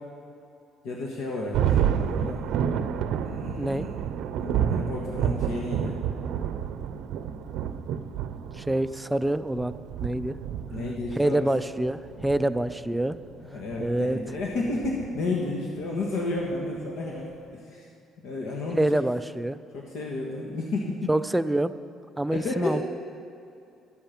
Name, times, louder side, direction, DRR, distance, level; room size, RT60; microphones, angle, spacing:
voice 1, 0.8-2.4 3.2-3.9 4.4-6.0 10.7-11.5 12.4-12.6 13.4-17.9 18.2-19.0 19.7-21.1 22.3-22.8, left 2 dB, 75° left, -2 dB, 1.6 m, -32 dB
Thunder, 1.5-15.5, right 9 dB, 75° right, 0.6 m, -30 dB
voice 2, 8.5-9.8 10.0-10.4 11.1-13.2 13.8-14.2 18.7-19.6 21.1-21.7 22.2-22.8, right 1 dB, 5° right, 13 dB, 0.3 m, -26 dB
12.0 x 8.8 x 7.2 m, 2.6 s
cardioid pair, 145°, 0 cm